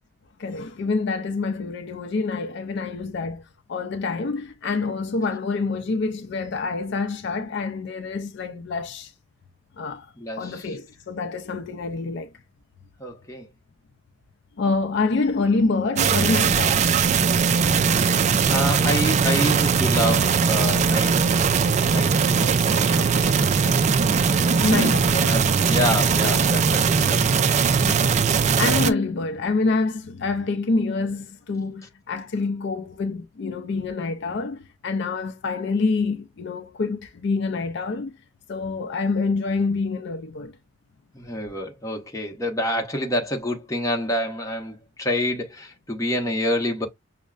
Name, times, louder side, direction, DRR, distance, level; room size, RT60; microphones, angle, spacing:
voice 1, 0.4-3.4 3.7-9.1 9.8-12.3 14.6-16.9 24.6-25.2 27.8-28.2 28.6-38.1 38.5-40.5, left 3 dB, 60° left, 0.4 m, -26 dB
voice 2, 10.2-10.7 13.0-13.5 18.5-21.1 21.9-23.7 25.1-27.2 41.1-46.9, left 1 dB, 15° left, 0.9 m, -28 dB
sound 1, 16.0-28.9, right 6 dB, 35° right, 0.3 m, -20 dB
6.2 x 2.1 x 2.3 m
head